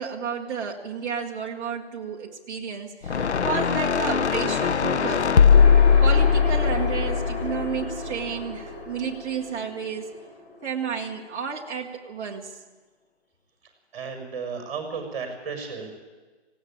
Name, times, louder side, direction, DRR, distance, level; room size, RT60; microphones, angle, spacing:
voice 1, 0.0-5.3 6.0-10.1 10.6-12.6, right 6 dB, 10° right, -2 dB, 1.4 m, -32 dB
sound 1, 3.0-8.3, left 6 dB, 75° left, 1.0 m, -20 dB
sound 2, 5.5-11.1, left 2 dB, 50° left, 6.7 m, -33 dB
voice 2, 13.9-16.0, right 5 dB, 30° right, 3 dB, 6.1 m, -34 dB
19.0 x 17.0 x 8.8 m, 1.3 s
hypercardioid pair, 165°, 34 cm